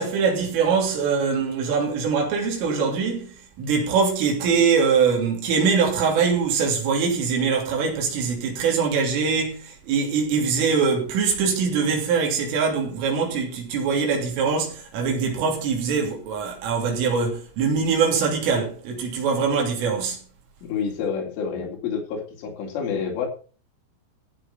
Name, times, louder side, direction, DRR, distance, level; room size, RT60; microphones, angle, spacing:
voice 1, 0.0-20.2, right 5 dB, 75° right, 5.7 m, -23 dB
voice 2, 20.6-23.3, left 6 dB, 75° left, 5.9 m, -28 dB
14.5 x 7.8 x 5.8 m
omnidirectional pair, 5.8 m